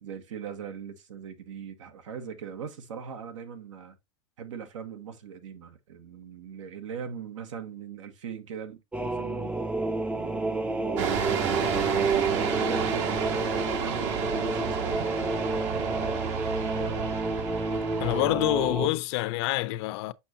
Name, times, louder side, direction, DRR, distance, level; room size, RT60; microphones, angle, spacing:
voice 1, 0.0-4.0 4.4-9.5 10.1-15.3 15.6-16.2 16.6-17.1, right 7 dB, 90° right, 1.3 m, -41 dB
sound 1, 8.9-18.9, right 3 dB, 5° right, 0.4 m, -30 dB
sound 2, 11.0-18.2, right 7 dB, 70° right, 1.4 m, -31 dB
Brass instrument, 12.2-16.4, right 4 dB, 40° right, 1.1 m, -40 dB
voice 2, 18.0-20.1, left 17 dB, 60° left, 0.6 m, -27 dB
7.1 x 5.5 x 2.7 m
supercardioid pair, 130°, 16 cm